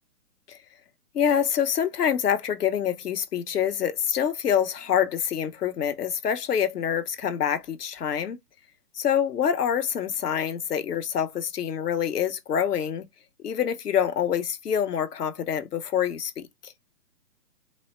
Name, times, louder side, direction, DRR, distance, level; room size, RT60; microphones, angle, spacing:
voice 1, 1.1-8.4 9.0-13.1 13.4-16.7, left 8 dB, 80° left, 0.9 m, -26 dB
4.1 x 2.1 x 4.3 m
hypercardioid pair, 145°, 46 cm